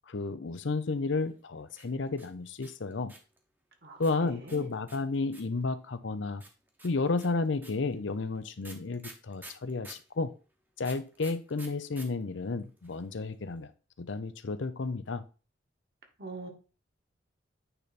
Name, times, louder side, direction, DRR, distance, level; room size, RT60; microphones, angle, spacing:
voice 1, 0.1-3.1 4.0-6.4 6.8-10.3 10.8-13.7 14.0-15.2, left 3 dB, 75° left, 0.6 m, -32 dB
sound 1, 1.7-3.4 4.0-5.6 6.4-10.1 10.8-12.1 12.3-12.4 12.6-13.1, right 2 dB, 10° right, 0.9 m, -49 dB
voice 2, 4.2-4.7 16.2-16.5, right 2 dB, 55° right, 1.5 m, -42 dB
9.0 x 3.4 x 4.1 m
head